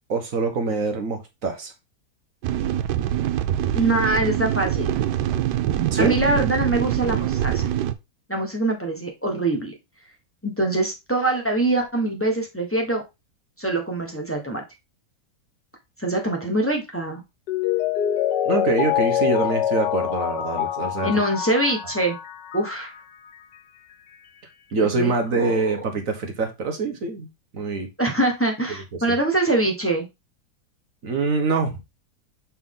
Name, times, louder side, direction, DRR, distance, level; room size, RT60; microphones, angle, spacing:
voice 1, 0.1-1.7 5.9-6.1 18.4-21.2 24.7-27.9 28.7-29.2 31.0-31.8, right 4 dB, 55° right, 1.5 m, -25 dB
sound 1, 2.4-7.9, right 11 dB, 85° right, 1.2 m, -24 dB
voice 2, 3.7-4.9 6.0-7.7 8.3-9.7 10.4-13.0 13.6-14.6 16.0-17.2 21.0-22.2 22.5-22.9 24.7-25.6 28.0-30.1, right 2 dB, 10° left, 1.1 m, -24 dB
Mallet percussion, 17.5-23.0 23.3-23.4, left 11 dB, 85° left, 1.5 m, -25 dB
5.8 x 4.5 x 3.7 m
omnidirectional pair, 1.8 m